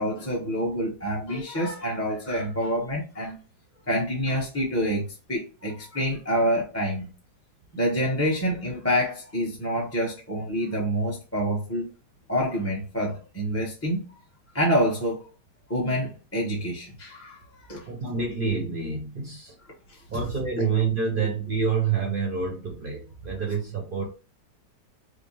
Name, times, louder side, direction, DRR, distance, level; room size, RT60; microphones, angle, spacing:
voice 1, 0.0-3.4 3.9-7.1 7.7-11.9 12.3-14.0 14.5-15.2 15.7-17.4 17.7-17.8 20.6-20.7, equal, 10° left, 0.7 m, -27 dB
voice 2, 17.9-19.5 20.1-24.1, right 5 dB, 45° right, 0.7 m, -27 dB
4.9 x 2.1 x 3.1 m
omnidirectional pair, 1.8 m